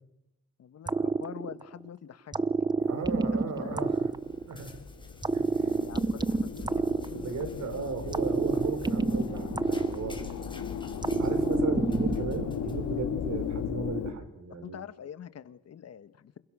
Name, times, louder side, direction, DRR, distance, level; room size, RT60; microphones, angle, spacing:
voice 1, 0.6-2.5 2.8-3.0 3.3-3.8 5.6-7.8 14.6-16.4, left 8 dB, 55° left, 13 dB, 1.6 m, -45 dB
sound 1, 0.9-1.9 2.3-4.7 5.2-7.6 8.1-10.5 11.0-12.5, right 3 dB, 15° right, 0.9 m, -28 dB
voice 2, 2.9-4.0 4.3-4.8 5.3-5.8 7.1-10.2 11.2-14.8, right 4 dB, 65° right, 9 dB, 5.3 m, -36 dB
sound 2, 3.6-13.6, left 2 dB, 15° left, 4.5 m, -50 dB
sound 3, 4.0-14.1, left 8 dB, 80° left, 3.1 m, -36 dB
28.5 x 28.0 x 6.4 m, 0.86 s
cardioid pair, 90°, 30 cm